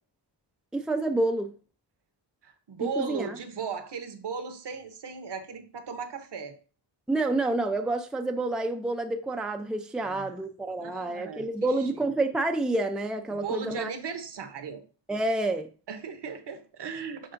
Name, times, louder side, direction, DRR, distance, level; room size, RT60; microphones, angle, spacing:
voice 1, 0.7-1.5 2.8-3.3 7.1-13.9 15.1-15.7, right 2 dB, ahead, 0.5 m, -28 dB
voice 2, 2.4-6.6 10.0-10.4 10.8-11.5 11.8-12.0 13.3-14.8 15.9-17.3, right 5 dB, 60° right, 1.0 m, -37 dB
10.5 x 3.5 x 2.6 m
wide cardioid pair, 95°, 47 cm